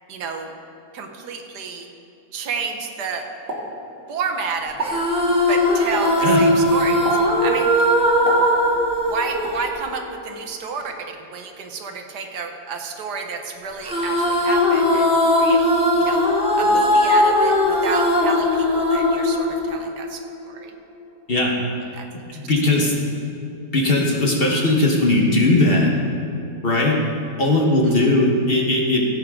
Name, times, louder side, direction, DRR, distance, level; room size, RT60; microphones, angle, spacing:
voice 1, 0.1-0.5 0.9-1.9 2.3-3.3 4.1-5.0 5.5-7.0 7.4-7.7 9.1-10.9 11.3-15.7 15.9-16.3 16.5-20.7 21.9-22.1 22.4-22.5 27.9-28.1, right 5 dB, 80° right, 4 dB, 1.5 m, -30 dB
Explosion, 3.5-4.3 4.7-5.1 5.9-6.3 7.0-7.4 8.3-9.0 9.4-9.7, right 1 dB, 55° right, 2.3 m, -31 dB
sound 1, 4.8-10.3 13.8-20.2, left 1 dB, 5° right, 1.3 m, -19 dB
voice 2, 22.4-22.9 23.7-25.9 26.6-27.0 27.4-29.0, left 2 dB, 35° left, -1 dB, 1.4 m, -18 dB
16.5 x 8.5 x 3.7 m, 2.8 s
omnidirectional pair, 1.7 m